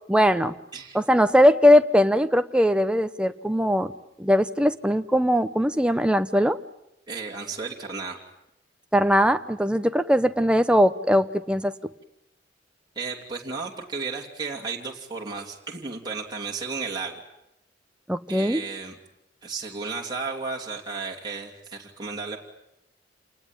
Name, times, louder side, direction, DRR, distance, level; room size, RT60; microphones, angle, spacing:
voice 1, 0.1-0.5 0.9-3.9 4.2-6.6 8.9-11.7 18.1-18.6, equal, 5° right, 9 dB, 0.9 m, -20 dB
voice 2, 7.1-8.2 12.9-17.2 18.3-19.0 19.4-22.4, right 4 dB, 25° right, -1 dB, 3.1 m, -33 dB
28.0 x 19.5 x 9.0 m, 0.85 s
head